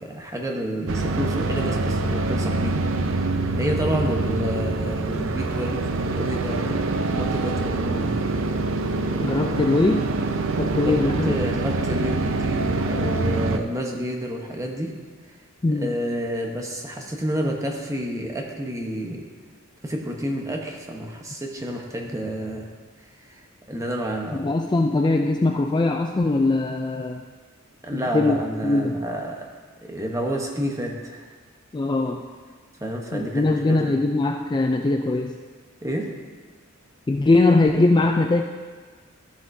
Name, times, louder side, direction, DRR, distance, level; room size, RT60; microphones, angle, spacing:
voice 1, 0.0-2.8 3.1-3.3 3.5-8.2 10.8-14.9 15.7-19.2 19.8-22.7 23.2-24.5 27.8-29.4 29.8-31.3 32.8-34.0 35.8-36.1, equal, 15° right, 1 dB, 1.0 m, -29 dB
sound 1, 0.9-13.6, right 3 dB, 65° right, 0.6 m, -25 dB
voice 2, 9.2-10.1 10.6-11.4 15.6-15.9 24.3-27.2 27.9-29.0 31.7-32.2 33.1-35.4 37.1-38.4, left 2 dB, 20° left, 4 dB, 0.3 m, -21 dB
13.5 x 7.8 x 2.7 m, 1.5 s
head